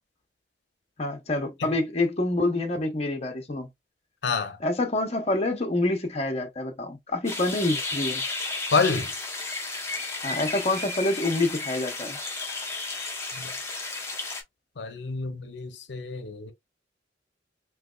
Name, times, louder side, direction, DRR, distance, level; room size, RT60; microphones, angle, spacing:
voice 1, 1.0-3.7 4.6-8.2 10.2-12.2, left 2 dB, 35° left, 0.9 m, -27 dB
voice 2, 4.2-4.6 8.7-9.1 13.3-13.5 14.8-16.5, left 4 dB, 70° left, 0.7 m, -28 dB
sound 1, 7.3-14.4, left 3 dB, 15° left, 1.0 m, -33 dB
3.3 x 3.0 x 2.3 m
head